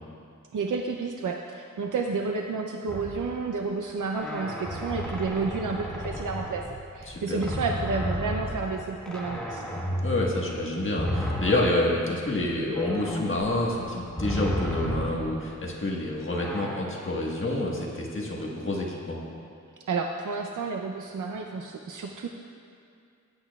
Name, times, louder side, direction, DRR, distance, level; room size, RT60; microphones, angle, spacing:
voice 1, 0.5-6.6 6.9-9.6 19.9-22.3, right 4 dB, 80° right, 2 dB, 0.6 m, -30 dB
sound 1, 2.9-3.5 4.2-7.1 7.4-15.6 16.4-16.8, equal, 5° left, 1.4 m, -33 dB
voice 2, 7.0-7.4 10.0-19.2, left 1 dB, 40° left, -3 dB, 1.5 m, -28 dB
17.5 x 10.5 x 2.4 m, 2.4 s
wide cardioid pair, 125°, 31 cm